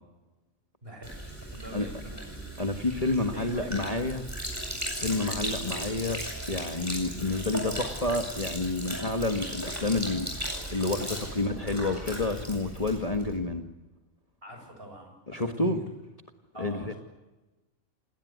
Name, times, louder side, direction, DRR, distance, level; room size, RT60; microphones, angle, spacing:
voice 1, 0.8-1.2 1.5-2.5 3.2-4.2 5.4-5.6 11.4-11.6 14.4-15.8 16.5-17.0, right 1 dB, 45° right, 3 dB, 8.2 m, -44 dB
Sink (filling or washing), 1.0-13.4, equal, 10° right, 8.1 m, -37 dB
voice 2, 2.6-4.3 5.0-6.2 6.5-13.7 15.3-15.8 16.6-16.9, left 2 dB, 30° left, 5 dB, 1.6 m, -29 dB
29.0 x 19.5 x 9.4 m, 1.1 s
omnidirectional pair, 1.4 m